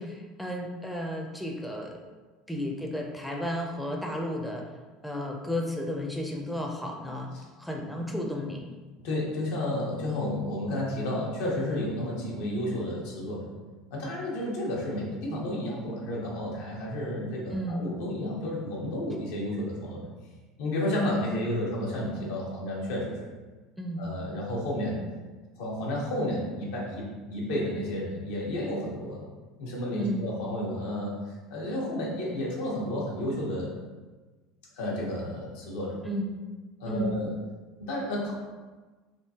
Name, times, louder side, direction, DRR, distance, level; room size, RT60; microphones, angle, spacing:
voice 1, 0.0-2.1 2.5-4.6 5.0-7.3 7.6-8.7 17.5-17.8 23.8-24.0 30.0-30.3 36.0-36.3 36.9-37.2, equal, ahead, 0 dB, 0.4 m, -33 dB
voice 2, 9.0-13.5 13.9-20.1 20.6-23.2 24.0-25.0 25.6-29.2 29.6-33.7 34.7-36.0 36.8-37.3 37.8-38.3, left 1 dB, 80° left, -4 dB, 1.0 m, -31 dB
3.6 x 2.6 x 2.8 m, 1.3 s
supercardioid pair, 120°, 0 cm